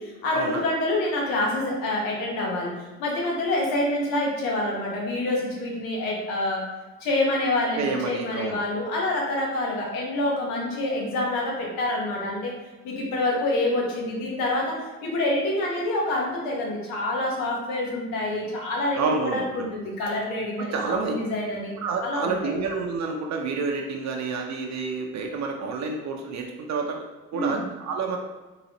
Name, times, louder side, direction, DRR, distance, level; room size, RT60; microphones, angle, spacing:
voice 1, 0.0-2.7 3.0-6.6 7.0-12.5 12.8-22.5 27.3-27.6, left 1 dB, 80° left, -2 dB, 1.2 m, -27 dB
voice 2, 7.8-8.6 18.9-19.6 20.7-21.1 21.8-27.0 27.3-28.2, right 4 dB, 55° right, 2 dB, 0.6 m, -29 dB
3.8 x 3.1 x 3.0 m, 1.2 s
supercardioid pair, 70°, 34 cm